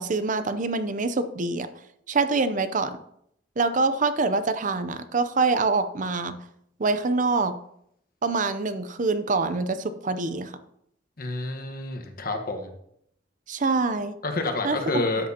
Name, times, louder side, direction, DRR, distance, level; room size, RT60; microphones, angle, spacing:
voice 1, 0.0-1.7 2.1-3.0 3.6-6.4 6.8-7.5 8.2-10.5 13.5-14.1 14.6-14.8, right 3 dB, 45° right, 11 dB, 0.6 m, -25 dB
voice 2, 11.2-12.7 14.2-15.3, left 2 dB, 50° left, 5 dB, 1.2 m, -28 dB
13.0 x 7.6 x 2.8 m, 0.73 s
head